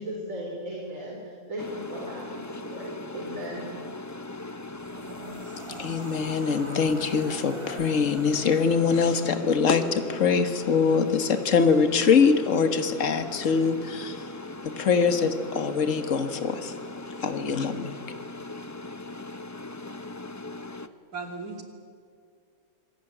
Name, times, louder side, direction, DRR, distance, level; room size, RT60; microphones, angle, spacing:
voice 1, 0.0-3.7, equal, 60° right, -3 dB, 4.5 m, -36 dB
sound 1, 1.6-20.9, left 2 dB, 20° left, 0.5 m, -39 dB
sound 2, 4.7-9.9, right 2 dB, 25° right, 1.1 m, -44 dB
voice 2, 5.8-14.3 14.6-16.7 17.2-17.9, left 5 dB, 60° left, 8 dB, 1.8 m, -23 dB
voice 3, 21.1-21.6, right 4 dB, 75° right, 3 dB, 3.3 m, -36 dB
26.0 x 18.0 x 9.1 m, 2.2 s
omnidirectional pair, 1.6 m